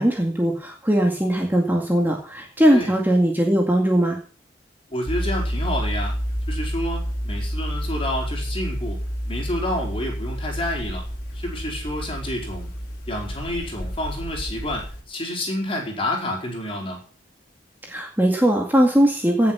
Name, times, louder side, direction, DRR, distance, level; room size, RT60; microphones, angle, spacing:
voice 1, 0.0-4.2 17.8-19.5, equal, 10° right, 0 dB, 2.1 m, -20 dB
voice 2, 4.9-6.2 6.5-9.0 9.3-11.1 11.3-12.7 13.1-17.0, left 1 dB, 30° left, 0 dB, 4.6 m, -29 dB
sound 1, 5.1-15.0, equal, 45° left, 3.6 m, -29 dB
17.5 x 7.5 x 5.7 m, 0.41 s
head